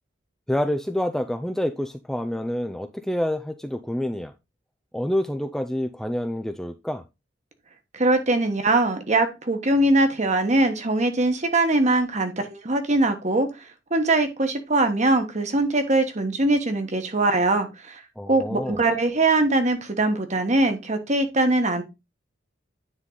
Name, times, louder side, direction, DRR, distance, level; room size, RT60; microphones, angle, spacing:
voice 1, 0.5-4.3 4.9-7.0 18.2-18.8, left 1 dB, ahead, 0.4 m, -27 dB
voice 2, 7.9-12.3 12.6-13.5 13.9-18.0 18.3-21.8, right 2 dB, 40° right, 1.3 m, -22 dB
9.7 x 3.8 x 3.9 m
head